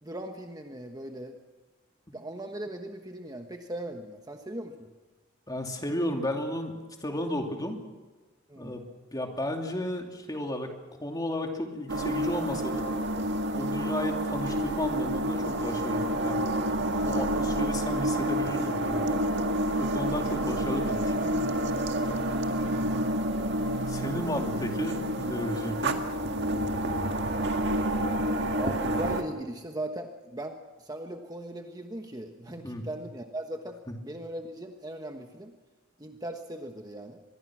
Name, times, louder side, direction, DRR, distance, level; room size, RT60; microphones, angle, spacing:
voice 1, 0.0-1.4 2.1-4.9 8.5-8.8 22.7-23.1 24.0-24.4 28.6-35.5 36.0-37.2, right 1 dB, 20° right, 4 dB, 1.2 m, -39 dB
voice 2, 5.5-6.7 7.0-7.8 8.6-8.8 9.1-10.7 11.0-12.9 13.5-16.5 17.1-19.2 19.8-21.3 23.9-26.0 32.6-32.8 33.9-34.0, left 1 dB, 20° left, 2 dB, 2.7 m, -33 dB
sound 1, 11.9-29.2, right 1 dB, 55° right, 1.8 m, -29 dB
25.0 x 21.5 x 6.2 m, 1.3 s
head